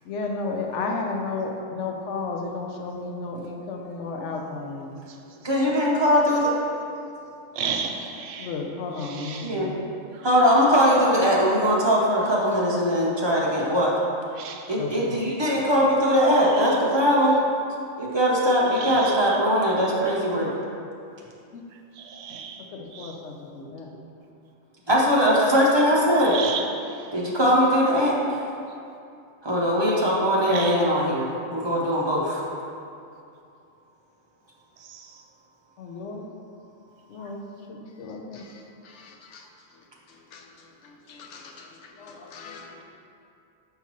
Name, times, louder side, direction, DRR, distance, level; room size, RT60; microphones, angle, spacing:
voice 1, 0.0-5.0 8.4-9.8 14.8-15.2 21.5-21.6 22.7-23.9 25.1-26.2 35.8-36.3 37.1-37.4 37.7-39.5 39.7-42.8, left 3 dB, 70° left, 1 dB, 0.9 m, -34 dB
voice 2, 5.4-6.5 9.4-9.7 10.2-13.9 14.7-17.4 18.0-20.5 24.9-26.4 27.1-28.1 29.4-32.4, equal, 25° right, -4 dB, 0.6 m, -21 dB
voice 3, 7.5-8.5 9.0-9.6 10.1-10.3 14.4-14.7 16.3-16.8 18.7-19.4 22.0-22.6 22.9-23.2 26.2-27.1 30.5-30.8 34.8-35.2, right 6 dB, 80° right, 4 dB, 1.0 m, -34 dB
5.7 x 5.6 x 3.0 m, 2.5 s
omnidirectional pair, 1.3 m